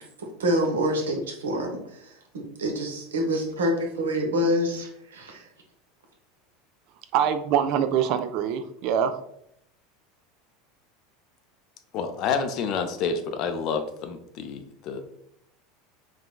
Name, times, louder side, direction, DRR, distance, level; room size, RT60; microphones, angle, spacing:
voice 1, 0.2-5.4, equal, 70° right, 2 dB, 0.7 m, -27 dB
voice 2, 7.1-9.1, right 8 dB, 50° right, 9 dB, 0.3 m, -24 dB
voice 3, 11.9-15.0, left 5 dB, 45° left, 8 dB, 0.4 m, -29 dB
3.8 x 3.2 x 2.2 m, 0.72 s
figure-of-eight pair, 75°, 0 cm